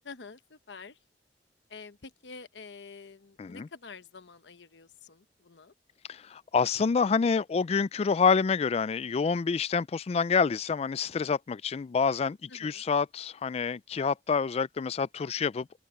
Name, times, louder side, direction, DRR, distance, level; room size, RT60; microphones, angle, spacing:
voice 1, 0.0-1.0 1.7-5.7 12.5-12.8, left 4 dB, 85° left, 0.9 m, -48 dB
voice 2, 6.1-15.7, left 5 dB, 35° left, 0.3 m, -27 dB
open air
head